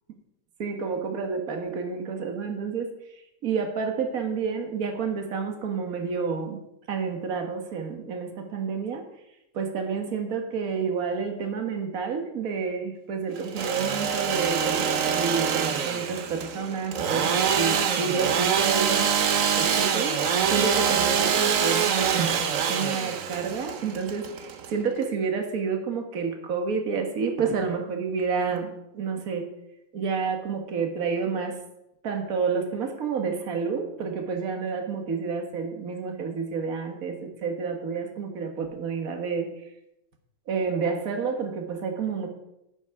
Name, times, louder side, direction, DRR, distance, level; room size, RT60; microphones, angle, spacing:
voice 1, 0.6-2.9 3.4-6.6 6.9-9.0 9.5-19.1 19.6-20.2 20.5-29.5 29.9-31.6 32.0-39.5 40.5-42.3, right 5 dB, 45° right, 3 dB, 1.8 m, -29 dB
Engine / Sawing, 13.4-25.0, right 7 dB, 65° right, 0.8 m, -25 dB
11.0 x 8.3 x 4.8 m, 0.86 s
omnidirectional pair, 2.3 m